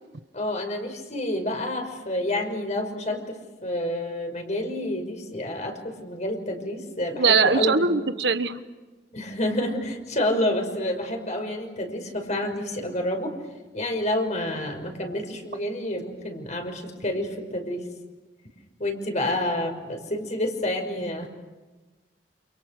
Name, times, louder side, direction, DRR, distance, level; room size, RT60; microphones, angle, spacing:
voice 1, 0.3-7.9 9.1-13.4 13.7-17.8 18.8-21.3, left 1 dB, 40° left, 4 dB, 5.8 m, -29 dB
voice 2, 7.2-8.6, right 4 dB, 75° right, 10 dB, 1.3 m, -21 dB
29.5 x 28.5 x 6.6 m, 1.2 s
head